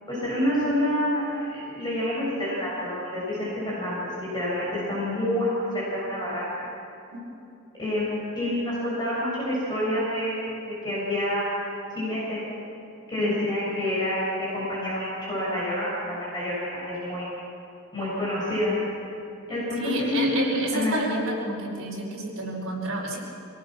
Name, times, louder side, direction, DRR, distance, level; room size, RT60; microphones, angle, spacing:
voice 1, 0.1-6.5 7.8-12.4 13.1-17.3 17.9-18.7 19.5-20.3 20.7-21.0, left 1 dB, 20° left, -8 dB, 7.1 m, -28 dB
voice 2, 19.8-23.2, right 1 dB, 65° right, -2 dB, 4.9 m, -29 dB
26.0 x 18.0 x 6.2 m, 2.6 s
head